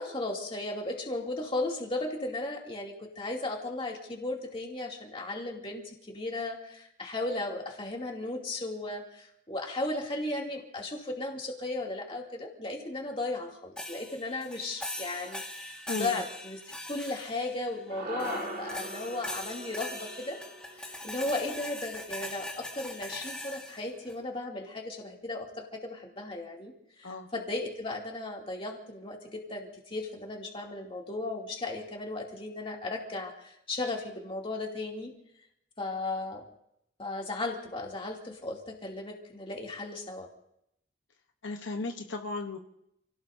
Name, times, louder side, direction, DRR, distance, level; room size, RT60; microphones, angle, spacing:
voice 1, 0.0-20.4 20.8-26.7 27.0-35.1 35.8-36.4 37.0-40.3, left 2 dB, 25° left, 0 dB, 2.7 m, -36 dB
sound 1, 13.8-17.8 18.2-24.1, left 1 dB, 5° left, 1.7 m, -41 dB
voice 2, 15.9-16.2 27.0-27.3 41.4-42.6, left 3 dB, 65° left, 4 dB, 1.0 m, -35 dB
sound 2, 17.9-22.4, right 2 dB, 40° right, 2.1 m, -41 dB
29.5 x 17.5 x 2.7 m, 0.78 s
head